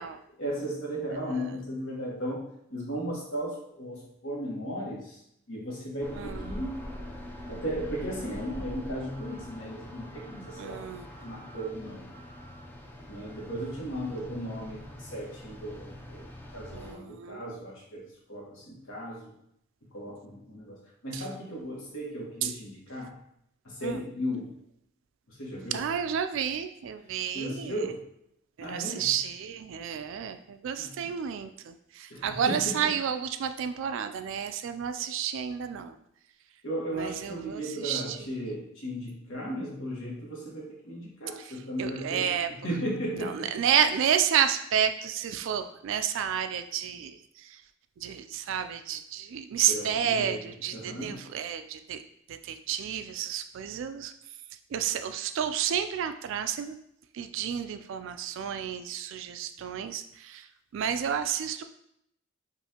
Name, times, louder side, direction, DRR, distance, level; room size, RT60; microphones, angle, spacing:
voice 1, 0.4-5.2 5.5-6.9 7.5-10.8 11.2-12.1 13.1-19.3 19.9-23.1 23.6-24.5 25.3-25.8 27.3-28.0 28.6-29.1 30.8-31.0 32.1-32.8 36.6-43.5 49.7-51.2, equal, 70° left, -4 dB, 1.4 m, -36 dB
sound 1, 6.0-16.9, left 1 dB, 10° left, 0.4 m, -43 dB
voice 2, 10.6-11.1 16.7-17.4 21.1-21.2 22.4-22.5 23.8-24.0 25.7-27.8 28.6-36.0 36.9-38.2 41.4-41.5 41.8-42.5 43.1-47.6 48.0-52.0 52.3-54.1 54.7-56.8 57.1-61.6, right 8 dB, 65° right, 9 dB, 0.3 m, -31 dB
5.5 x 2.6 x 2.8 m, 0.76 s
head